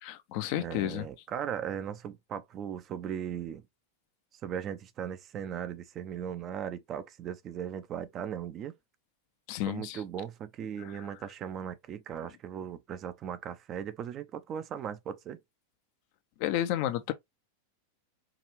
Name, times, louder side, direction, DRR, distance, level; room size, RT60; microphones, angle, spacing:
voice 1, 0.0-1.1 9.5-10.0 10.8-11.1 16.4-17.1, left 12 dB, 45° left, 0.6 m, -32 dB
voice 2, 0.6-3.6 4.4-8.7 9.7-15.4, right 9 dB, 30° right, 0.6 m, -38 dB
4.7 x 2.6 x 3.1 m
figure-of-eight pair, 90°, 0 cm